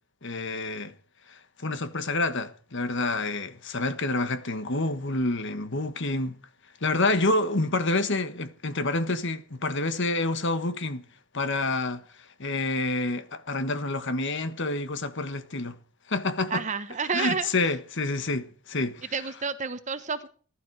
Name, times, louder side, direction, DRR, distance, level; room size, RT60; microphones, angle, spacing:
voice 1, 0.2-0.9 1.6-6.4 6.8-11.0 11.3-12.0 12.4-15.8 16.1-16.6 17.1-19.0, left 2 dB, 55° left, 1.5 m, -28 dB
voice 2, 16.5-17.5 19.1-20.3, right 5 dB, 35° right, 1.1 m, -29 dB
20.0 x 12.0 x 4.8 m
head